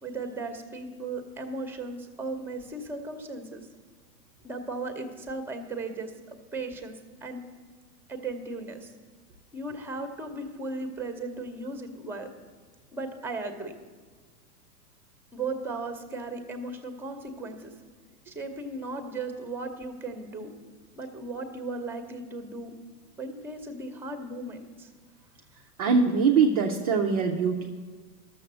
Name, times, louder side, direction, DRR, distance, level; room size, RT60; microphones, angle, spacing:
voice 1, 0.0-3.6 4.4-6.9 7.2-7.4 8.1-8.9 9.5-12.3 12.9-13.7 15.3-17.7 18.3-20.5 20.9-22.7 23.2-24.9, right 3 dB, 5° right, 6 dB, 0.7 m, -36 dB
voice 2, 25.8-27.7, right 5 dB, 25° right, 0 dB, 0.4 m, -23 dB
11.5 x 6.9 x 6.8 m, 1.4 s
hypercardioid pair, 130°, 48 cm